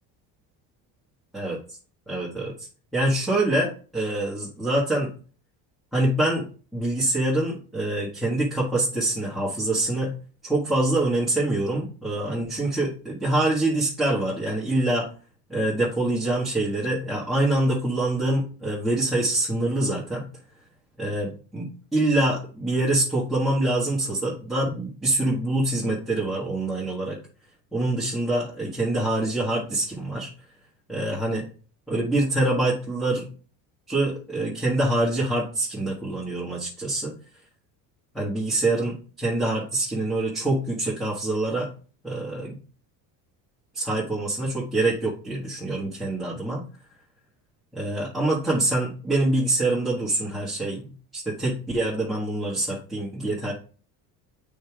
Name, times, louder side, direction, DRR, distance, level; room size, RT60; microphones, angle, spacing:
voice 1, 2.1-5.1 5.9-6.5 6.7-10.1 10.4-15.1 15.5-20.2 21.0-27.2 27.7-30.3 30.9-31.5 31.9-33.2 33.9-37.1 38.1-41.7 42.0-42.6 43.7-46.6 47.7-53.5, right 2 dB, ahead, -7 dB, 1.6 m, -25 dB
7.9 x 3.6 x 4.7 m, 0.39 s
cardioid pair, 135°, 43 cm